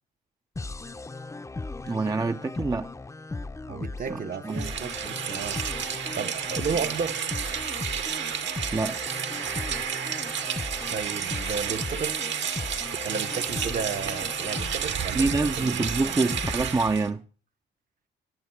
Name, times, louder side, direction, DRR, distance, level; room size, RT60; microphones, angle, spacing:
sound 1, 0.6-16.6, left 3 dB, 15° left, 0.8 m, -37 dB
voice 1, 1.9-2.9 4.1-4.2 4.4-4.7 8.7-9.0 15.1-17.2, right 3 dB, 20° right, 0.6 m, -26 dB
voice 2, 3.7-7.2 10.9-12.2 13.0-15.3 15.6-15.9, right 6 dB, 45° right, 1.1 m, -33 dB
Rain, 4.5-17.1, right 8 dB, 70° right, 1.9 m, -31 dB
21.0 x 7.3 x 4.6 m
cardioid pair, 90°, 20 cm